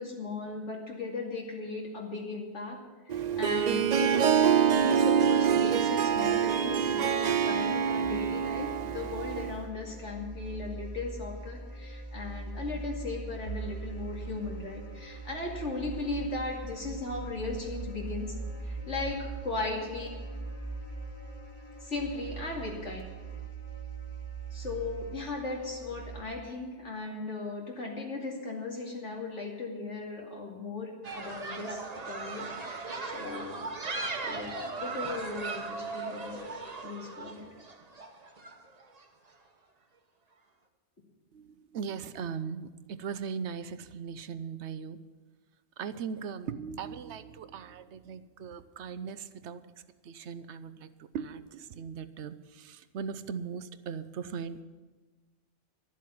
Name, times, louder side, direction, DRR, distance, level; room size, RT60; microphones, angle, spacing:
voice 1, 0.0-2.8 3.1-4.3 4.7-20.1 21.8-23.0 24.5-33.6 34.2-36.4 36.8-37.5, left 3 dB, 85° left, -1 dB, 2.8 m, -37 dB
Harp, 3.1-9.6, right 8 dB, 55° right, 0.4 m, -26 dB
sound 1, 8.0-26.2, right 3 dB, 40° left, 2.0 m, -41 dB
sound 2, 31.0-39.0, right 3 dB, 35° right, 1.1 m, -38 dB
voice 2, 41.3-45.0 45.8-49.6 50.0-54.6, right 6 dB, 75° right, 13 dB, 0.9 m, -39 dB
12.0 x 7.5 x 9.4 m, 1.3 s
omnidirectional pair, 1.2 m